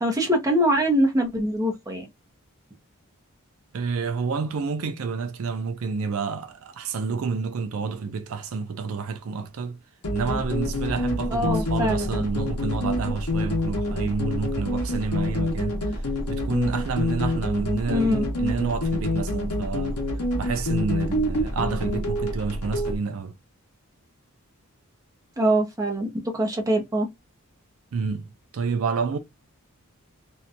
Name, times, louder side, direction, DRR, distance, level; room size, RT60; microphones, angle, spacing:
voice 1, 0.0-2.1 11.3-12.1 17.9-18.3 25.4-26.1 26.3-27.1, equal, 15° right, 0.6 m, -23 dB
voice 2, 3.7-9.8 10.1-20.0 20.4-23.4 27.9-29.2, right 5 dB, 70° right, 0.4 m, -29 dB
sound 1, 10.0-23.0, left 1 dB, 90° left, 0.9 m, -27 dB
2.6 x 2.2 x 2.5 m
head